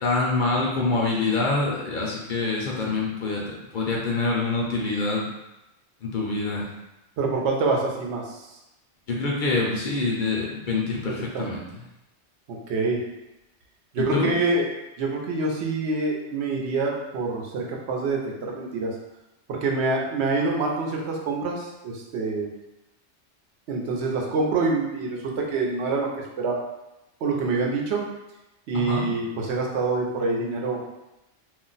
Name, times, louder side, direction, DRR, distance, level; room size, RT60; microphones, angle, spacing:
voice 1, 0.0-5.3 6.0-6.7 9.1-11.7 14.0-14.3 28.7-29.0, left 3 dB, 55° left, -2 dB, 0.6 m, -25 dB
voice 2, 7.2-8.4 11.3-11.4 12.5-13.0 13.9-14.7 15.0-18.9 19.5-22.5 23.7-26.1 26.4-26.6 27.2-28.1 28.7-30.8, right 3 dB, 70° right, -1 dB, 0.8 m, -26 dB
2.4 x 2.1 x 3.8 m, 0.95 s
omnidirectional pair, 1.2 m